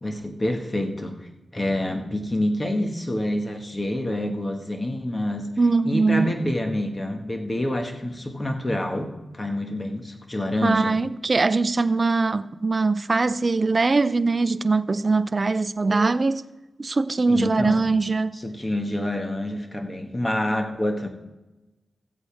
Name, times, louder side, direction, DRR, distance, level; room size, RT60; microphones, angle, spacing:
voice 1, 0.0-5.5 5.9-11.0 17.3-17.8 18.3-21.1, left 1 dB, 30° left, 1.7 m, -27 dB
voice 2, 5.6-6.4 10.6-16.4 16.8-18.4, right 3 dB, 45° right, 0.5 m, -22 dB
15.0 x 8.2 x 3.5 m
cardioid pair, 50°, 0 cm